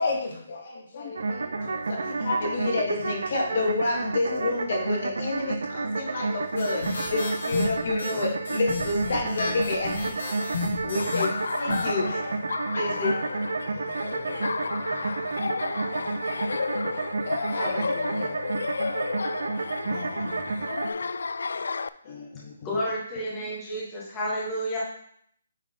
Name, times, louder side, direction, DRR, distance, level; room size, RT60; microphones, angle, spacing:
voice 1, 0.0-10.5 10.8-12.2 12.7-13.1 17.2-18.3, left 3 dB, 45° left, 1 dB, 1.6 m, -30 dB
sound 1, 1.1-20.9, right 3 dB, 85° right, 0.6 m, -31 dB
voice 2, 1.6-2.1 2.3-2.5 4.3-4.5 10.8-11.1 12.1-12.2 12.8-13.0 13.6-16.4 16.8-17.0 17.8-17.9 18.2-18.5 19.8-20.7 21.0-21.2 22.0-22.8, left 3 dB, 30° left, -2 dB, 1.1 m, -40 dB
sound 2, 6.6-11.9, left 3 dB, 65° left, 2.3 m, -34 dB
Laughter, 11.0-21.9, left 4 dB, 85° left, 0.3 m, -32 dB
voice 3, 22.6-24.8, equal, 10° left, -6 dB, 1.7 m, -30 dB
9.1 x 4.2 x 3.8 m, 0.66 s
hypercardioid pair, 175°, 0 cm